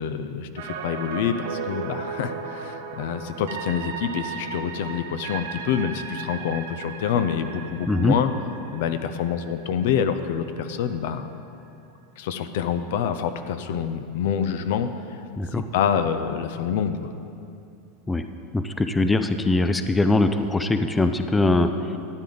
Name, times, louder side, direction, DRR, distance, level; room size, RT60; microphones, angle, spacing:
voice 1, 0.0-8.3 8.7-11.3 12.2-14.9 15.7-17.1, left 8 dB, 75° left, 9 dB, 0.6 m, -26 dB
sound 1, 0.6-10.6 10.9-11.0, right 6 dB, 85° right, 0.8 m, -36 dB
voice 2, 18.5-22.0, left 2 dB, 10° left, 9 dB, 0.4 m, -22 dB
12.5 x 8.5 x 4.0 m, 2.7 s
supercardioid pair, 125°, 0 cm